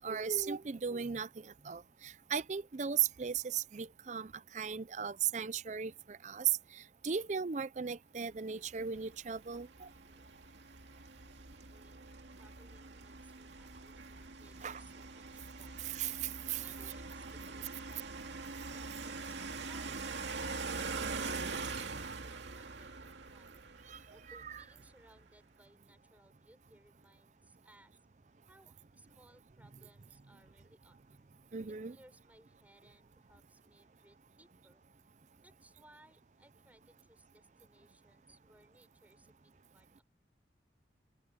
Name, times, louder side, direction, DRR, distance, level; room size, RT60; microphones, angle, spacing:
voice 1, 0.0-9.9 14.6-14.8 15.8-16.6 23.9-24.0 24.3-24.6 31.5-32.0, right 7 dB, 40° right, 0.5 m, -37 dB
sound 1, 8.8-24.9, right 4 dB, 75° right, 2.4 m, -44 dB
voice 2, 11.2-12.0 12.4-15.8 16.6-18.3 18.7-20.2 24.1-27.9 28.5-31.0 31.9-34.8 35.4-40.0, right 1 dB, 10° right, 6.9 m, -64 dB
head